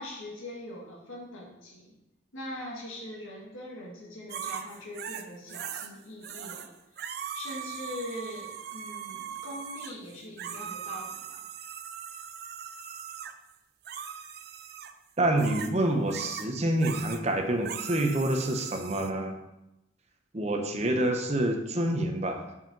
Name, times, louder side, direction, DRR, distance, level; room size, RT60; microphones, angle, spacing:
voice 1, 0.0-2.0 2.3-11.4, left 1 dB, 85° left, -3 dB, 1.9 m, -42 dB
sound 1, 4.3-5.9 6.2-6.7 7.0-13.3 13.8-14.9 15.4-15.7 16.1-16.5 16.8-17.2 17.6-19.1, right 8 dB, 50° right, 0.4 m, -40 dB
voice 2, 15.2-19.3 20.3-22.4, right 1 dB, 35° right, 4 dB, 0.8 m, -27 dB
5.6 x 5.1 x 5.4 m, 0.93 s
head